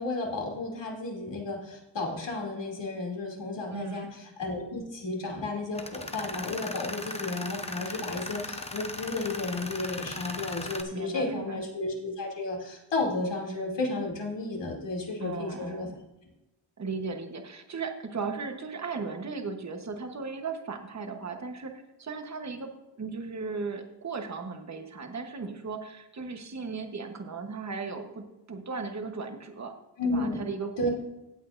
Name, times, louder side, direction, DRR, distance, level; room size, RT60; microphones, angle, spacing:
voice 1, 0.0-15.9 30.0-30.4 30.8-30.9, left 2 dB, 80° left, -1 dB, 2.8 m, -33 dB
voice 2, 3.7-4.2 10.9-11.6 15.2-16.0 16.8-29.7 30.1-30.9, right 4 dB, 40° right, 5 dB, 1.1 m, -36 dB
Tools, 5.7-10.8, left 2 dB, 15° left, 0.7 m, -38 dB
16.5 x 8.4 x 2.6 m, 1.0 s
wide cardioid pair, 155°, 43 cm